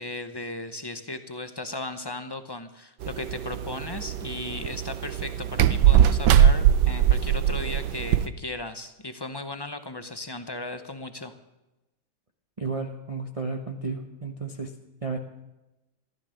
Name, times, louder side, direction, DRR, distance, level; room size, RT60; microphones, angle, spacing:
voice 1, 0.0-11.3, left 2 dB, 35° left, 9 dB, 0.3 m, -36 dB
sound 1, 3.0-8.3, right 10 dB, 80° right, 1.3 m, -21 dB
voice 2, 12.6-14.8 15.0-15.2, right 4 dB, 25° right, 3 dB, 0.9 m, -32 dB
15.0 x 12.5 x 6.4 m, 1.0 s
omnidirectional pair, 1.9 m